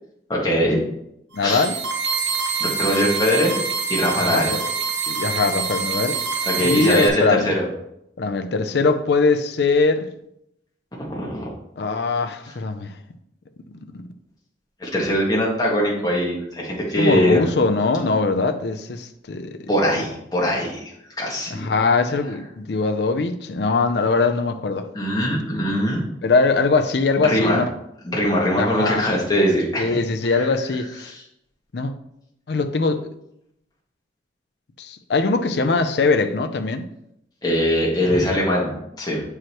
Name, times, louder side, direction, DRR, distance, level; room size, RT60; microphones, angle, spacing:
voice 1, 0.3-0.8 1.4-1.7 2.6-3.5 3.9-4.5 6.4-7.6 11.1-11.5 14.8-17.5 19.7-20.8 21.2-21.7 24.9-26.0 27.2-27.6 28.0-30.5 31.0-31.2 37.4-39.2, equal, 20° left, -4 dB, 1.5 m, -21 dB
voice 2, 1.3-1.8 4.3-4.6 5.1-6.2 6.6-7.5 8.2-10.1 11.8-13.0 17.0-19.6 19.9-20.0 21.5-24.9 26.2-27.7 28.6-29.1 29.8-31.1 31.7-31.9 32.5-33.1 34.8-36.9, left 4 dB, 60° left, 7 dB, 0.5 m, -21 dB
sound 1, 1.3-7.1, right 5 dB, 70° right, 1.1 m, -26 dB
7.5 x 4.8 x 3.0 m, 0.79 s
head